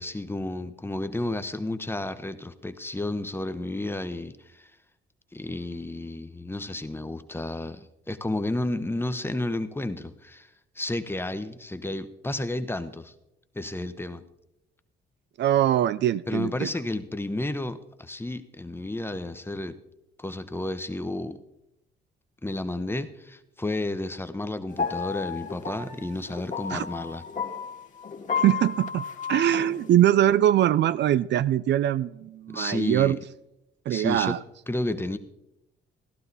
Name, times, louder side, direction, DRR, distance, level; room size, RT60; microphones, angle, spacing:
voice 1, 0.0-4.7 5.3-10.5 10.8-13.1 13.5-14.2 16.3-19.8 20.2-21.4 22.4-27.2 32.5-33.2 33.9-34.3 34.7-35.2, left 2 dB, 10° left, 11 dB, 0.9 m, -32 dB
voice 2, 15.4-16.7 26.7-26.8 28.4-33.2 33.9-34.4, right 12 dB, 60° right, 16 dB, 0.4 m, -22 dB
sound 1, 24.7-29.9, left 6 dB, 40° left, 1.7 m, -33 dB
15.5 x 11.5 x 4.1 m, 0.87 s
cardioid pair, 90°, 20 cm